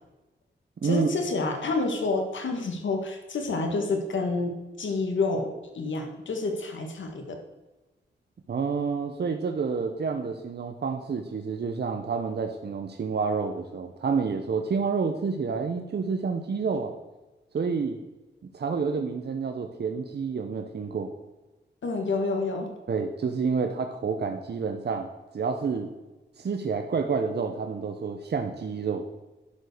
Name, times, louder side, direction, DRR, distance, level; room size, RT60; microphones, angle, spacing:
voice 1, 0.8-7.4 21.8-22.7, left 3 dB, 85° left, 3 dB, 1.7 m, -29 dB
voice 2, 8.5-16.9 17.5-18.0 18.5-21.1 22.9-25.1 25.3-25.9 26.4-29.0, right 5 dB, 60° right, 5 dB, 0.9 m, -29 dB
11.5 x 5.4 x 6.6 m, 1.1 s
wide cardioid pair, 110°, 19 cm